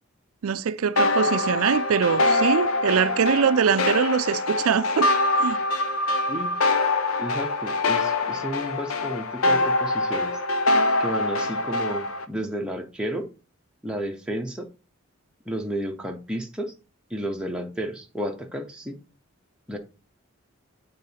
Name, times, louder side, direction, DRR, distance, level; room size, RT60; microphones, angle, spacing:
voice 1, 0.4-5.1 5.4-5.6, right 6 dB, 85° right, 0.4 m, -23 dB
sound 1, 1.0-12.2, left 2 dB, 80° left, 0.7 m, -24 dB
voice 2, 7.2-10.3 11.0-13.3 13.8-14.7 15.4-16.7 17.1-19.0 19.7-19.8, equal, 5° right, 0.9 m, -32 dB
8.9 x 3.9 x 2.8 m
head